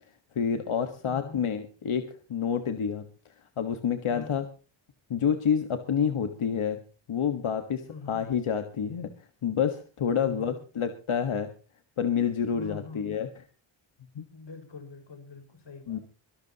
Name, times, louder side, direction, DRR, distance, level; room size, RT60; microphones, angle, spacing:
voice 1, 0.3-3.0 3.6-4.4 5.1-6.8 7.1-9.1 9.4-11.5 12.0-13.4 14.1-14.2 15.9-16.0, left 7 dB, 90° left, 7 dB, 1.6 m, -28 dB
voice 2, 1.1-1.5 4.1-4.4 7.9-8.2 10.1-10.6 12.5-13.1 14.3-16.0, left 4 dB, 60° left, 5 dB, 5.4 m, -45 dB
23.5 x 12.5 x 2.9 m, 0.36 s
wide cardioid pair, 135°, 48 cm